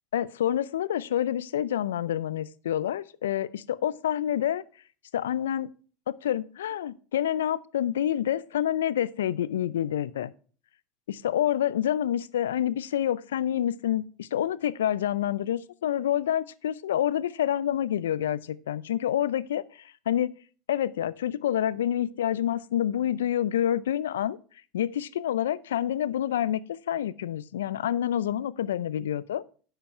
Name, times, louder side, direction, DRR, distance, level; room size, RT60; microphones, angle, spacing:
voice 1, 0.1-4.6 5.1-5.7 6.1-10.3 11.1-20.3 20.7-24.4 24.7-29.5, left 11 dB, 80° left, 0.5 m, -28 dB
10.0 x 6.9 x 4.3 m
hypercardioid pair, 80°, 0 cm